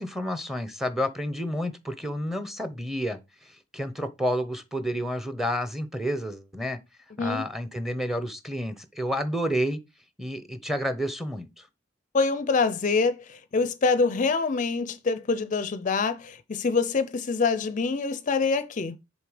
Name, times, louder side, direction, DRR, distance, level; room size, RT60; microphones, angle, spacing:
voice 1, 0.0-3.2 3.7-6.8 7.2-9.8 10.2-11.6, equal, ahead, 0.8 m, -30 dB
voice 2, 12.1-19.0, left 4 dB, 40° left, 0.5 m, -25 dB
6.7 x 4.2 x 4.9 m
head